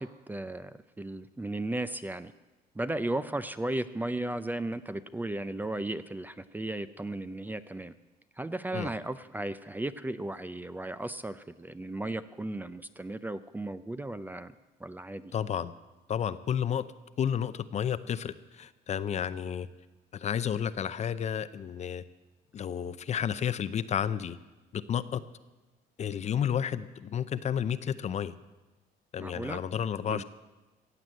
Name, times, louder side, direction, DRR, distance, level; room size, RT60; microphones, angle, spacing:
voice 1, 0.0-2.3 2.8-7.9 8.4-14.5 14.8-15.3 29.2-29.6 30.1-30.2, right 1 dB, 10° right, 13 dB, 0.5 m, -35 dB
voice 2, 15.3-15.7 16.1-16.8 17.2-19.7 20.1-22.0 22.5-24.4 24.7-25.2 26.0-28.3 29.1-30.2, left 8 dB, 40° left, 14 dB, 0.6 m, -31 dB
15.5 x 8.0 x 8.8 m, 1.1 s
cardioid pair, 110°, 17 cm